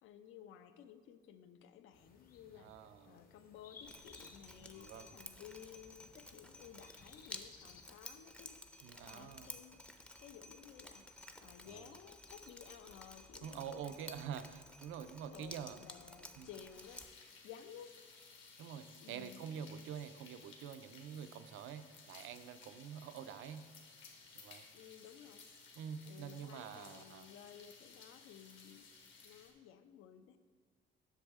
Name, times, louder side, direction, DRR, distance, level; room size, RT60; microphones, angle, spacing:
voice 1, 0.0-13.9 15.3-17.1 17.4-18.0 19.0-19.5 24.7-25.5 26.0-28.9 29.2-30.4, left 9 dB, 85° left, 10 dB, 0.5 m, -56 dB
sound 1, 1.9-7.9, left 5 dB, 45° left, 0.8 m, -61 dB
voice 2, 2.6-3.2 4.6-5.1 8.8-9.5 11.6-11.9 13.4-15.8 16.4-16.5 18.6-23.6 24.3-24.6 25.8-27.3, right 8 dB, 80° right, 11 dB, 0.5 m, -47 dB
Drip, 3.8-17.0, left 1 dB, 5° left, 0.4 m, -53 dB
sound 2, 16.7-29.5, left 4 dB, 70° left, 1.4 m, -59 dB
8.1 x 6.4 x 3.6 m, 1.5 s
cardioid pair, 135°, 20 cm